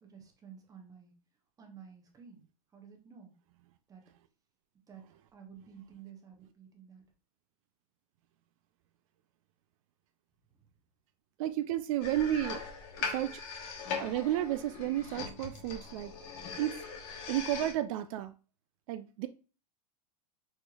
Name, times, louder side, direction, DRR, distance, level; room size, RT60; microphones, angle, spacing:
voice 1, 0.0-1.1 1.6-2.5 2.7-3.3 3.9-4.0 4.9-5.1 5.3-7.0, right 7 dB, 20° right, 0.8 m, -52 dB
voice 2, 11.4-12.6 13.1-13.4 14.0-16.1 16.6-16.8 17.3-18.3 18.9-19.3, right 12 dB, 60° right, 0.4 m, -32 dB
sound 1, 12.0-17.7, left 5 dB, 55° left, 1.2 m, -40 dB
4.3 x 3.1 x 2.3 m
supercardioid pair, 145°, 19 cm